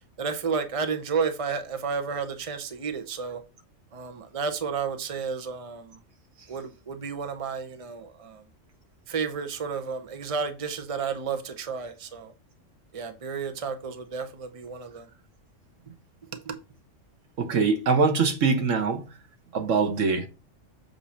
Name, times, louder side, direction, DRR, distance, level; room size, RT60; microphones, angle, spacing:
voice 1, 0.2-3.4 3.9-6.0 6.5-8.4 9.1-12.3 12.9-15.1 16.5-16.6, right 5 dB, 30° right, 0.9 m, -32 dB
voice 2, 17.4-19.1 19.5-20.3, right 4 dB, 80° right, 1.5 m, -23 dB
7.7 x 2.8 x 5.6 m
omnidirectional pair, 1.3 m